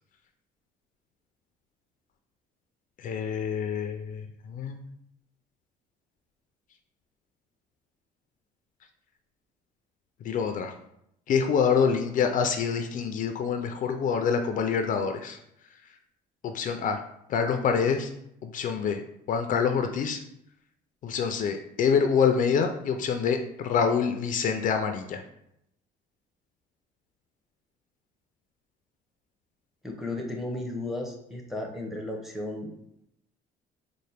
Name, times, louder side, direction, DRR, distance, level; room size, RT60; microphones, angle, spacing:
voice 1, 3.0-4.2 4.5-4.8 10.2-10.7 11.3-15.4 16.4-17.0 17.3-18.1 18.4-19.0 19.3-20.2 21.0-25.2, left 6 dB, 50° left, 6 dB, 0.4 m, -26 dB
voice 2, 29.8-32.7, left 2 dB, ahead, 0 dB, 0.6 m, -34 dB
4.1 x 2.1 x 3.3 m, 0.77 s
cardioid pair, 110°, 17 cm